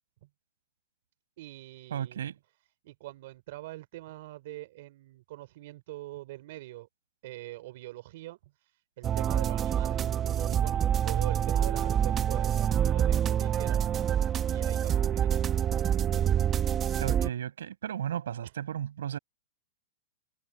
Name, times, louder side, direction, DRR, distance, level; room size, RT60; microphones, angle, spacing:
voice 1, 1.4-2.2 2.8-6.9 7.2-10.0 10.3-14.2 14.4-15.4 15.8-15.9 18.4-18.5, right 17 dB, 55° right, 3.2 m, -44 dB
voice 2, 1.9-2.4 17.0-19.2, right 9 dB, 90° right, 5.9 m, -34 dB
sound 1, 9.0-17.3, right 9 dB, 20° right, 0.9 m, -26 dB
supercardioid pair, 150°, 0 cm